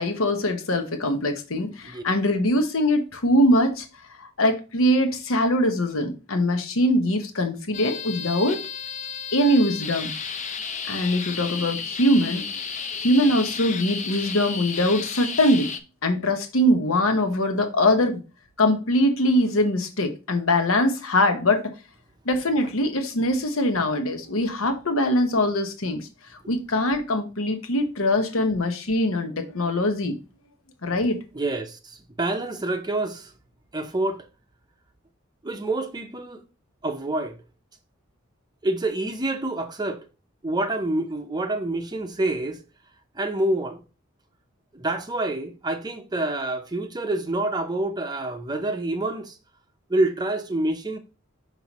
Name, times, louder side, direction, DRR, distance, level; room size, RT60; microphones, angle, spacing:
voice 1, 0.0-3.8 4.2-8.6 9.3-10.1 10.8-12.4 13.0-15.7 16.0-18.2 18.6-21.7 22.2-26.1 26.5-30.1 30.8-31.2, left 1 dB, 85° left, 1.0 m, -22 dB
sound 1, 7.7-15.8, left 6 dB, 35° left, 0.6 m, -33 dB
voice 2, 31.3-33.3 33.7-34.3 35.4-36.4 36.8-37.4 38.6-40.0 40.4-42.6 43.1-43.8 44.7-49.4 49.9-51.0, right 2 dB, 20° right, 0.6 m, -27 dB
5.8 x 5.6 x 2.9 m
head